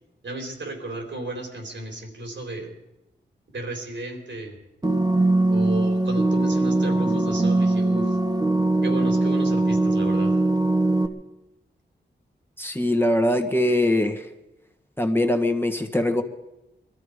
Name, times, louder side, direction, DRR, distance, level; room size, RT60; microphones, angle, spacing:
voice 1, 0.2-2.8 3.5-4.6 5.5-8.2 8.8-10.4, right 1 dB, 75° right, 2 dB, 3.7 m, -34 dB
sound 1, 4.8-11.1, right 2 dB, 20° right, 1.3 m, -21 dB
voice 2, 12.6-14.2 15.0-16.2, left 1 dB, 10° left, 5 dB, 1.5 m, -22 dB
21.5 x 13.0 x 5.1 m, 0.93 s
cardioid pair, 65°, 19 cm